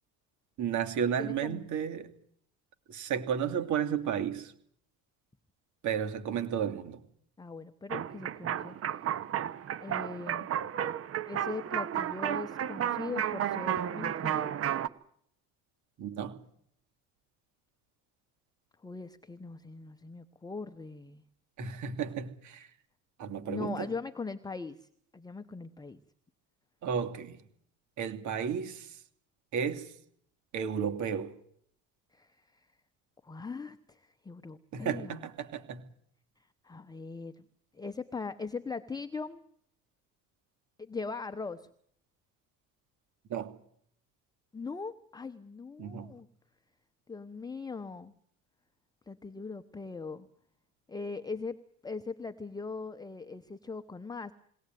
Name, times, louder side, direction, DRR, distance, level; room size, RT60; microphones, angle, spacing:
voice 1, 0.6-2.1 2.9-4.5 5.8-7.0 16.0-16.4 21.6-22.7 23.2-23.9 26.8-27.4 28.0-29.0 29.5-30.0 30.5-31.3 34.7-35.9 43.3-43.5 45.8-46.1, right 8 dB, 60° right, 2.9 m, -33 dB
voice 2, 1.2-1.7 7.4-8.8 9.8-10.5 11.3-14.5 18.8-21.2 23.5-26.0 32.1-32.7 33.2-35.3 36.4-37.4 37.7-39.4 40.8-41.7 44.5-46.3 47.1-48.1 49.1-50.3 50.9-51.6 51.8-54.3, left 4 dB, 10° left, 0.9 m, -40 dB
sound 1, 7.9-14.9, right 10 dB, 45° right, 1.1 m, -32 dB
22.0 x 18.0 x 9.3 m
cardioid pair, 120°, 33 cm